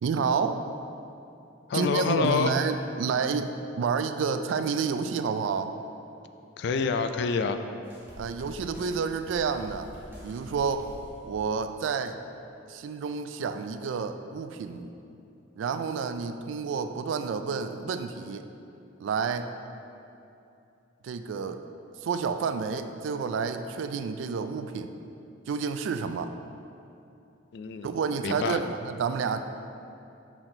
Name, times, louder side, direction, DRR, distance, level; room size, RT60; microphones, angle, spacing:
voice 1, 0.0-0.6 1.7-5.7 8.2-9.9 10.2-10.9 11.2-12.2 12.7-14.9 15.6-18.5 19.0-19.5 21.0-21.6 22.0-24.9 25.5-26.3 27.8-29.4, right 5 dB, 85° right, 9 dB, 0.3 m, -29 dB
voice 2, 1.7-2.5 6.6-7.6 27.5-27.9 28.2-28.6, left 5 dB, 60° left, 8 dB, 0.3 m, -27 dB
sound 1, 7.8-11.5, equal, 10° right, 1.1 m, -46 dB
6.1 x 4.2 x 3.8 m, 2.7 s
head